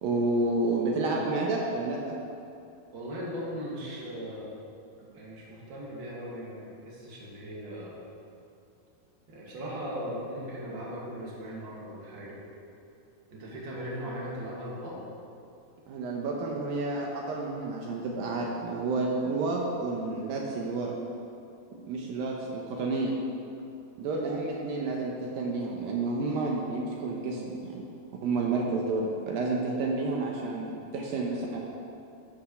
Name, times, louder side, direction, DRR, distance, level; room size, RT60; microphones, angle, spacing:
voice 1, 0.0-2.2 15.9-20.9 21.9-23.1 24.0-27.8 28.2-31.6, right 3 dB, 75° right, -1 dB, 2.7 m, -30 dB
voice 2, 2.9-4.6 5.0-8.0 9.3-12.4 13.3-15.0, equal, 35° right, -5 dB, 2.5 m, -38 dB
13.0 x 7.1 x 7.1 m, 2.6 s
omnidirectional pair, 4.3 m